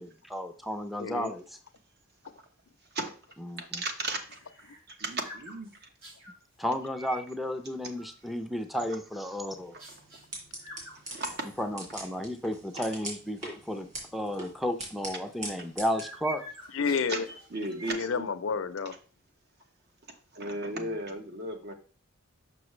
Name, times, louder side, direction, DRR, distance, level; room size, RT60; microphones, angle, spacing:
voice 1, 0.0-1.4 3.5-3.8 6.6-9.7 11.6-13.9 14.1-16.4, equal, ahead, 0.5 m, -33 dB
voice 2, 1.0-1.3 16.7-17.3 17.9-19.0, left 5 dB, 70° left, 0.5 m, -30 dB
voice 3, 3.6-4.4 5.0-5.7 11.1-11.5 17.1-17.2 17.5-18.3 20.3-21.7, right 2 dB, 55° right, 1.0 m, -35 dB
sound 1, 3.9-6.4 6.9-7.3 7.8-8.3 8.7-9.4 9.8-10.3 10.6-12.0 12.4-12.5 12.9-13.1 13.6-13.8 15.2-17.9, right 1 dB, 80° right, 3.8 m, -48 dB
sound 2, 9.5-16.0, right 2 dB, 35° right, 2.6 m, -43 dB
6.1 x 5.7 x 3.1 m
head